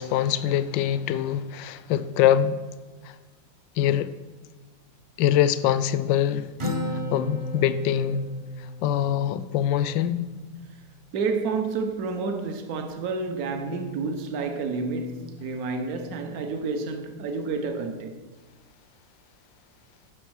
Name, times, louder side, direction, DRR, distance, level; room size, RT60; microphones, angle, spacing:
voice 1, 0.0-2.6 3.0-3.1 3.8-4.1 5.2-6.5 7.1-8.2 8.8-10.3, left 10 dB, 85° left, 1.3 m, -23 dB
Acoustic guitar, 6.6-10.3, left 1 dB, 30° right, 0.5 m, -34 dB
voice 2, 11.1-18.2, right 4 dB, 60° right, 1.3 m, -29 dB
10.5 x 6.3 x 6.3 m
omnidirectional pair, 2.0 m